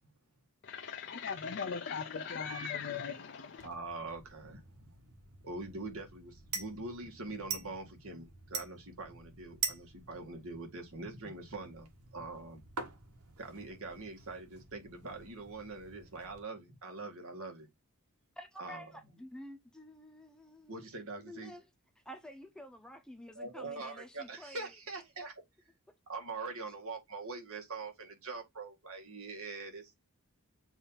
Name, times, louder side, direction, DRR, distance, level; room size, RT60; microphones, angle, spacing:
voice 1, 0.6-3.7, left 6 dB, 50° left, 0.6 m, -39 dB
voice 2, 3.6-4.8 5.4-12.6 13.4-17.7 18.6-18.8 20.7-21.5 23.4-25.3 26.1-30.1, right 3 dB, 65° right, 2.0 m, -43 dB
sound 1, 3.6-16.4, right 5 dB, 85° right, 1.6 m, -45 dB
voice 3, 18.4-20.9 21.2-21.7 22.0-24.7, equal, 5° left, 0.9 m, -50 dB
6.9 x 2.8 x 5.6 m
head